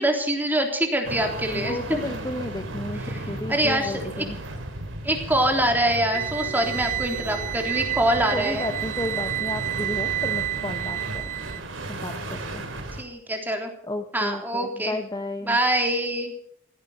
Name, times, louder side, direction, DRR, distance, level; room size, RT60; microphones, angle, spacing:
voice 1, 0.0-2.0 3.0-3.2 3.5-4.2 5.0-8.6 13.0-13.7 14.1-15.0 15.5-16.3, right 1 dB, 10° right, 3 dB, 3.5 m, -24 dB
sound 1, 1.0-13.0, right 1 dB, 85° right, 3.5 m, -35 dB
voice 2, 1.5-4.4 8.3-11.3 11.9-12.6 13.8-15.6, left 1 dB, 20° left, 5 dB, 1.2 m, -33 dB
sound 2, 6.1-11.6, right 13 dB, 40° right, 0.8 m, -30 dB
17.0 x 15.0 x 5.6 m, 0.67 s
head